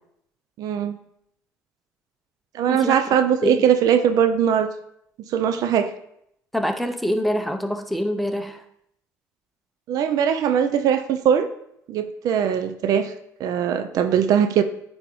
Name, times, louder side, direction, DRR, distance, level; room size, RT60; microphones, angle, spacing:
voice 1, 0.6-1.0 2.5-4.7 5.2-5.9 9.9-11.5 11.9-13.1 13.4-14.6, right 8 dB, 65° right, 10 dB, 0.4 m, -20 dB
voice 2, 6.5-8.6, equal, ahead, 6 dB, 0.7 m, -25 dB
9.2 x 3.4 x 3.1 m, 0.75 s
supercardioid pair, 85°, 7 cm